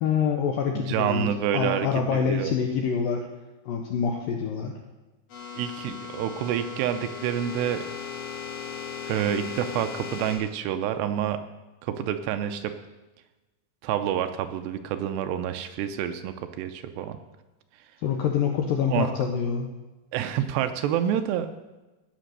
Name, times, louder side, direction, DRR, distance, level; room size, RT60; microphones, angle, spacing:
voice 1, 0.0-1.3 1.5-3.3 3.7-4.8 18.0-19.7, left 7 dB, 75° left, 3 dB, 2.1 m, -26 dB
voice 2, 0.7-2.5 5.6-7.8 9.0-11.4 11.8-12.7 13.8-17.2 18.9-19.1 20.1-21.5, right 10 dB, 80° right, 8 dB, 2.7 m, -28 dB
sound 1, 5.3-10.4, left 6 dB, 55° left, 4.5 m, -37 dB
17.5 x 6.2 x 6.6 m, 1.1 s
omnidirectional pair, 5.1 m